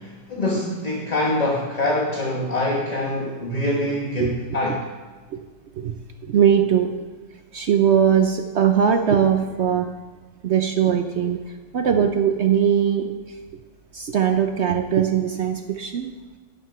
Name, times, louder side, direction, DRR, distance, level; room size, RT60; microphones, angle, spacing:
voice 1, 0.0-4.8, left 1 dB, 30° left, -1 dB, 1.2 m, -24 dB
voice 2, 6.2-6.9 7.5-9.9 10.4-11.4 11.7-13.1 13.9-16.1, right 8 dB, 65° right, 6 dB, 0.7 m, -20 dB
12.0 x 6.5 x 5.7 m, 1.3 s
omnidirectional pair, 1.7 m